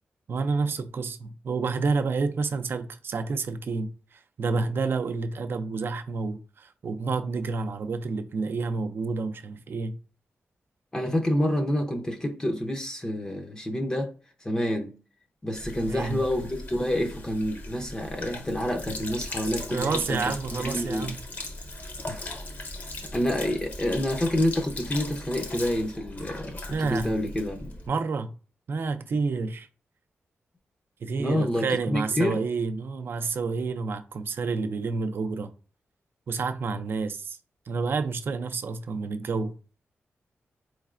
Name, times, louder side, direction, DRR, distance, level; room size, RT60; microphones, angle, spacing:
voice 1, 0.3-10.0 15.9-16.2 19.7-21.2 26.7-27.1 27.9-28.3 28.7-29.7 31.0-35.5 36.3-37.4 37.7-39.5, right 4 dB, 55° right, 0.4 m, -29 dB
voice 2, 10.9-14.1 14.4-14.9 15.4-20.2 20.5-21.1 22.1-22.4 23.1-27.8 31.2-32.4, left 1 dB, 15° left, 0.6 m, -28 dB
Sink (filling or washing), 15.5-27.9, left 2 dB, 45° left, 0.8 m, -38 dB
4.2 x 3.1 x 2.4 m
wide cardioid pair, 140°, 4 cm